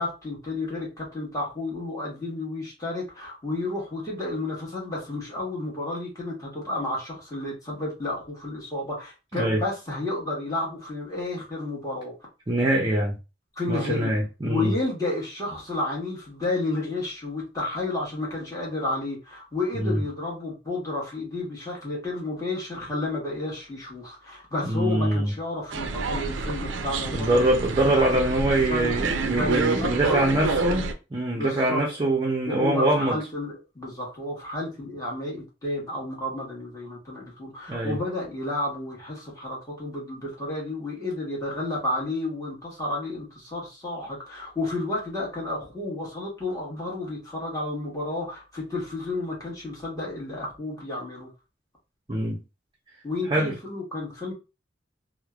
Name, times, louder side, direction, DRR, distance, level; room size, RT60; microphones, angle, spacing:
voice 1, 0.0-12.1 13.6-14.1 14.4-27.5 27.9-28.0 28.7-29.0 29.4-30.2 30.5-30.6 31.3-31.8 32.5-51.3 53.0-54.3, left 2 dB, 20° left, 1.2 m, -31 dB
voice 2, 12.5-13.2 13.7-14.8 19.7-20.0 24.6-25.3 27.1-33.2 37.7-38.0 52.1-52.4 53.2-53.5, right 1 dB, 25° right, 0.5 m, -24 dB
sound 1, 25.7-30.9, right 4 dB, 85° right, 0.4 m, -28 dB
3.1 x 2.1 x 2.3 m
head